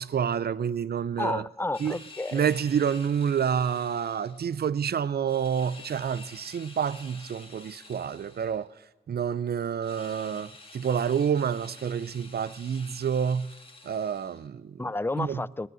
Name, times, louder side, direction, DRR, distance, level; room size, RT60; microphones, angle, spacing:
voice 1, 0.0-1.5 1.8-2.0 2.3-8.7 9.1-13.5 13.8-14.8 15.2-15.4, right 7 dB, 65° right, 0.5 m, -28 dB
voice 2, 1.2-2.4 14.8-15.7, left 2 dB, 10° left, 0.4 m, -31 dB
sound 1, 1.7-4.4 5.3-8.7 9.8-14.5, left 2 dB, 30° left, 1.9 m, -49 dB
19.0 x 9.6 x 6.2 m
cardioid pair, 45°, 18 cm